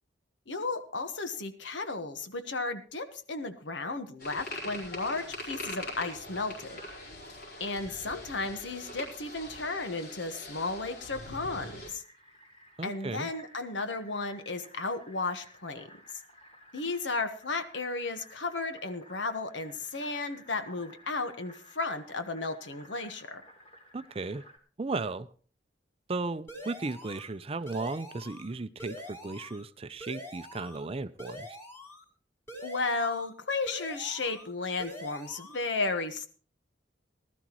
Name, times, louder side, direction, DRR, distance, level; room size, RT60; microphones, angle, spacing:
voice 1, 0.5-6.8 7.6-12.0 12.8-15.9 16.7-23.4 32.6-36.3, left 3 dB, 80° left, 9 dB, 1.3 m, -34 dB
sound 1, 4.2-11.9, left 1 dB, 55° left, 4.7 m, -42 dB
Fill (with liquid), 7.3-24.6, equal, 35° left, 3.4 m, -57 dB
voice 2, 12.8-13.3 23.9-24.4 24.8-25.3 26.1-31.5, right 3 dB, 30° right, 13 dB, 0.5 m, -35 dB
sound 2, 26.5-27.3 27.7-28.5 28.8-29.6 30.0-30.9 31.2-32.0 32.5-33.3 33.7-34.5 34.8-35.6, equal, 15° left, 3.8 m, -45 dB
19.5 x 12.5 x 3.1 m, 0.41 s
head